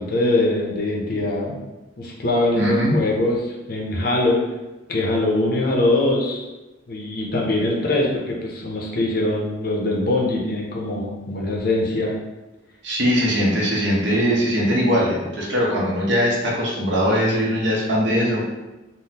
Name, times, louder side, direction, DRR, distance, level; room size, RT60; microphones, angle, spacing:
voice 1, 0.0-1.5 2.0-4.4 4.9-6.4 6.9-12.1, left 2 dB, 50° left, -2 dB, 0.5 m, -22 dB
voice 2, 2.6-3.0 12.8-18.4, equal, 65° right, -4 dB, 0.8 m, -20 dB
3.6 x 2.1 x 2.7 m, 1.0 s
head